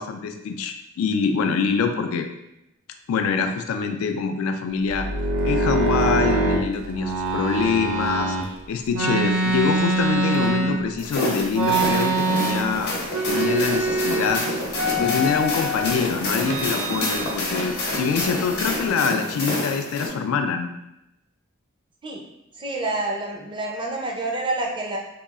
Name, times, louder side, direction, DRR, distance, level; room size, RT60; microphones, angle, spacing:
voice 1, 0.0-2.3 3.1-5.1 5.4-8.4 8.7-12.9 13.3-14.4 15.0-20.7, left 5 dB, 80° left, 9 dB, 0.3 m, -25 dB
sound 1, 4.9-8.5 8.9-11.0 11.5-12.8 13.1-14.4 14.7-15.9 16.4-17.3 17.6-18.8, right 2 dB, 85° right, 0.5 m, -24 dB
sound 2, 11.0-20.1, left 2 dB, 55° left, 0.7 m, -28 dB
voice 2, 22.6-25.0, right 2 dB, 25° right, 0 dB, 0.4 m, -28 dB
2.8 x 2.3 x 2.3 m, 0.86 s
head